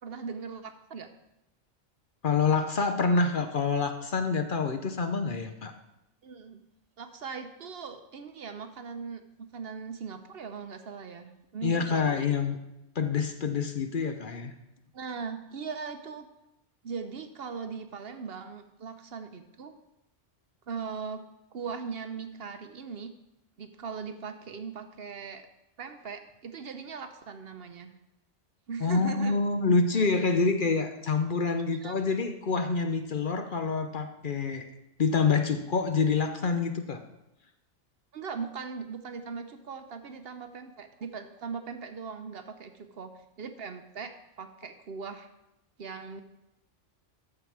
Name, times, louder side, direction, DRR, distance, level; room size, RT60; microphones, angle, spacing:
voice 1, 0.0-1.1 6.2-6.6 7.0-12.5 14.9-16.3 16.8-19.8 20.7-21.2 21.5-23.1 23.6-25.5 25.8-27.9 28.7-29.4 31.7-32.0 38.1-43.1 43.4-45.3 45.8-46.2, right 5 dB, 60° right, 8 dB, 0.9 m, -39 dB
voice 2, 2.2-5.7 11.6-12.6 13.0-14.5 28.8-34.7 35.0-37.0, left 4 dB, 50° left, 7 dB, 0.8 m, -27 dB
14.0 x 5.8 x 4.7 m, 0.89 s
omnidirectional pair, 1.2 m